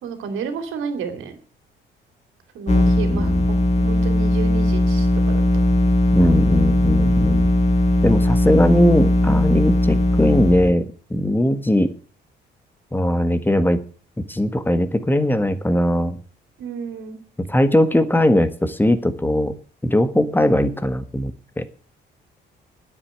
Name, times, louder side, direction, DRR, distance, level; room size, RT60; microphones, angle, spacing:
voice 1, 0.0-1.3 2.5-5.1 5.3-5.4 16.6-17.2, right 6 dB, 85° right, 7 dB, 2.9 m, -31 dB
sound 1, 2.7-10.7, left 1 dB, 35° left, 3.2 m, -18 dB
voice 2, 3.1-3.5 6.1-7.5 8.0-11.9 12.9-13.8 14.2-16.2 17.4-19.5 19.8-21.7, left 1 dB, 10° left, 11 dB, 1.5 m, -19 dB
9.8 x 8.4 x 9.3 m, 0.41 s
cardioid pair, 90°, 20 cm